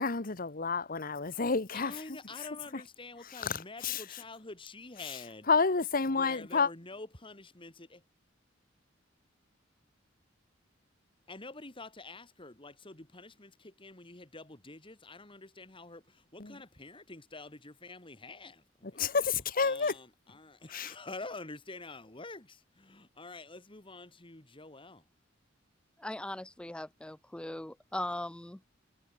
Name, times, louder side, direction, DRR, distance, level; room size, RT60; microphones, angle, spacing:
voice 1, 0.0-2.0 3.3-4.0 5.5-6.7 16.4-16.5 19.0-19.9 20.7-20.9, left 4 dB, 50° left, 1.3 m, -29 dB
voice 2, 1.7-5.5 6.1-8.0 11.3-18.6 19.6-25.0, left 3 dB, 25° left, 2.8 m, -47 dB
voice 3, 26.0-28.6, left 1 dB, 5° left, 0.4 m, -39 dB
head